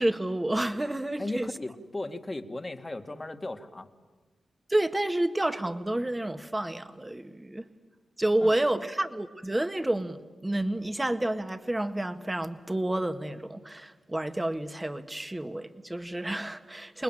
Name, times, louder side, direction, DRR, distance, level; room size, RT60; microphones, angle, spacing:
voice 1, 0.0-1.5 4.7-7.7 8.2-17.0, right 1 dB, 15° right, 1.7 m, -29 dB
voice 2, 1.2-3.9 8.4-8.6, left 2 dB, 25° left, 2.1 m, -36 dB
29.0 x 20.0 x 9.1 m
cardioid pair, 55°, 0 cm